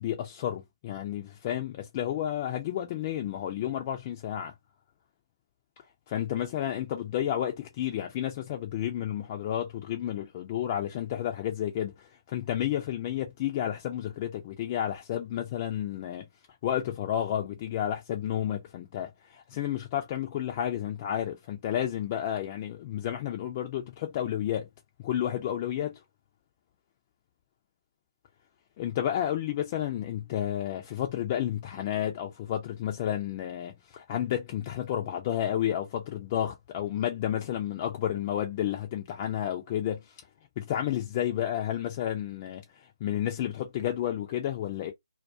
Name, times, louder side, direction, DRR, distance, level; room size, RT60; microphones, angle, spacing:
voice 1, 0.0-4.5 6.1-16.3 16.6-24.7 25.0-26.0 28.8-40.2 40.6-42.6 43.0-44.9, left 11 dB, 25° left, 0.3 m, -31 dB
2.2 x 2.2 x 2.5 m
figure-of-eight pair, 150°, 3 cm